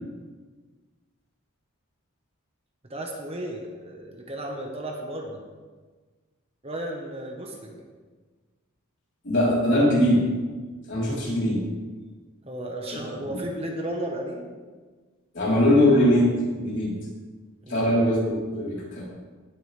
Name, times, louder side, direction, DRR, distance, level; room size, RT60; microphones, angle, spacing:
voice 1, 2.9-5.4 6.6-7.8 12.5-14.5 17.6-18.1, right 1 dB, 30° right, 1 dB, 1.3 m, -34 dB
voice 2, 9.2-10.2 10.9-11.6 13.2-13.4 15.3-16.9 17.7-19.1, left 1 dB, 55° left, -6 dB, 3.9 m, -21 dB
18.0 x 8.0 x 3.4 m, 1.4 s
head